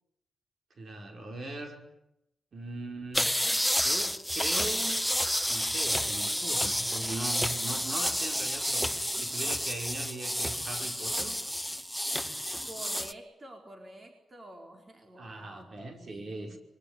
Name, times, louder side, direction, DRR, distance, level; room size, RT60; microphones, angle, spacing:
voice 1, 0.7-1.8 2.5-3.3 3.8-5.0 5.5-11.4 15.2-16.6, right 2 dB, 50° right, 3 dB, 5.3 m, -40 dB
sound 1, 3.1-13.1, equal, ahead, 1.0 m, -30 dB
voice 2, 12.6-16.6, right 1 dB, 30° right, 3 dB, 4.4 m, -48 dB
25.0 x 23.0 x 10.0 m, 0.85 s
cardioid pair, 105°, 0 cm